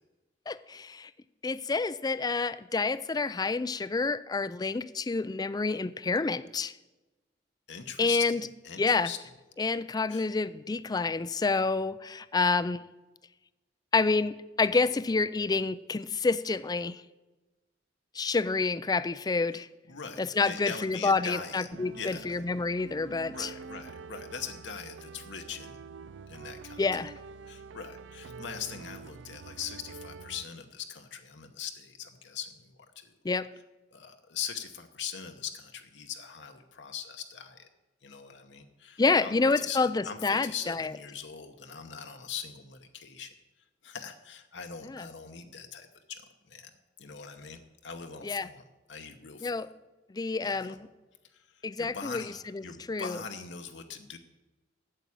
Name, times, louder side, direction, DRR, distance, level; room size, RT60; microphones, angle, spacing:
voice 1, 0.5-1.1 1.4-6.7 8.0-8.4 8.8-9.1 9.6-12.8 13.9-17.0 18.1-19.7 20.2-23.5 26.8-27.1 33.2-33.5 39.0-40.9 44.8-45.1 48.2-48.5 49.4-49.7 50.1-50.9 51.6-52.2 52.5-53.2, left 4 dB, 20° left, 16 dB, 0.4 m, -28 dB
voice 2, 7.7-9.2 10.1-10.3 19.9-21.7 22.0-22.4 23.3-25.8 26.3-27.0 27.5-33.2 33.9-37.7 38.0-43.4 43.8-46.2 46.5-46.7 47.0-49.7 50.4-50.8 51.3-54.2, left 7 dB, 70° left, 5 dB, 1.0 m, -41 dB
sound 1, 21.7-30.5, right 5 dB, 85° right, 0.4 m, -46 dB
9.0 x 7.5 x 8.4 m, 1.1 s
head